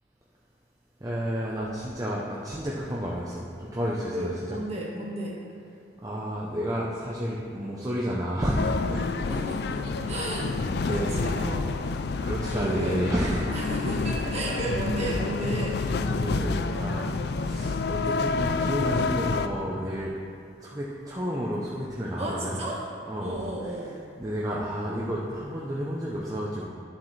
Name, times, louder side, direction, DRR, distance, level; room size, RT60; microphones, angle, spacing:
voice 1, 1.0-4.3 6.0-9.3 10.6-11.1 12.2-13.4 16.2-17.1 17.4-20.1 20.6-22.5 23.1-23.3 24.2-26.7, equal, 20° right, -5 dB, 0.7 m, -31 dB
voice 2, 4.1-5.4 9.3-11.7 12.5-13.0 13.5-15.8 22.2-22.9 23.2-23.9, right 1 dB, 35° right, -4 dB, 1.5 m, -32 dB
sound 1, 8.6-19.5, left 4 dB, 60° left, 0.3 m, -28 dB
11.0 x 7.3 x 3.3 m, 2.3 s
head